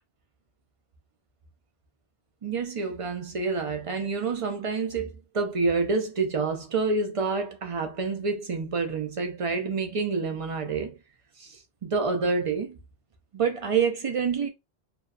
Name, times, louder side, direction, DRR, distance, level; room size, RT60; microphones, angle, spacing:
voice 1, 2.4-11.0 11.4-12.8 13.3-14.5, right 4 dB, 45° right, 0.4 m, -28 dB
2.7 x 2.2 x 2.3 m
omnidirectional pair, 1.1 m